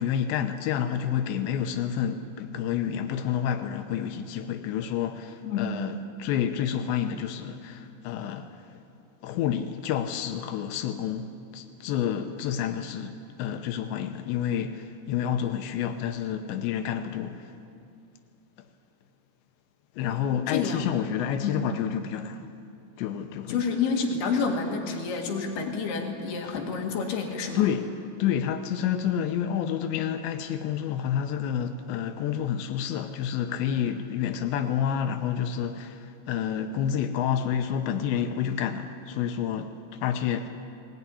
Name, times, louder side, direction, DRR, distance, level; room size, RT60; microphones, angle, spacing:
voice 1, 0.0-8.6 9.2-17.5 20.0-22.4 23.0-23.6 27.6-40.5, left 9 dB, 85° left, 3.1 m, -29 dB
voice 2, 5.4-5.8 20.0-20.9 21.4-21.6 23.5-27.7, left 5 dB, 65° left, 3.8 m, -29 dB
20.0 x 20.0 x 9.8 m
omnidirectional pair, 5.1 m